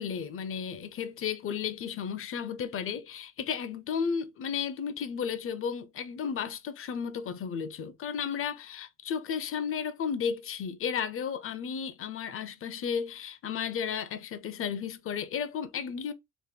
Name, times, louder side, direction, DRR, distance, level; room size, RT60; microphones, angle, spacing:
voice 1, 0.0-16.1, left 7 dB, 45° left, 0.5 m, -33 dB
3.0 x 2.1 x 3.3 m
cardioid pair, 90°, 30 cm